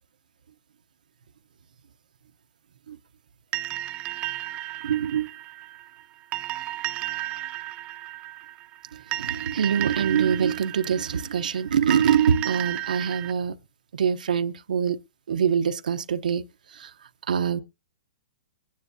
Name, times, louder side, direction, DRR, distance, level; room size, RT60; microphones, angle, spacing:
sound 1, 3.5-13.3, right 15 dB, 25° right, 0.6 m, -34 dB
voice 1, 4.8-5.3 9.2-13.5 14.0-15.0 15.3-16.4 16.8-16.9 17.3-17.6, right 7 dB, 85° right, 0.8 m, -24 dB
22.0 x 9.6 x 2.6 m
hypercardioid pair, 150°, 4 cm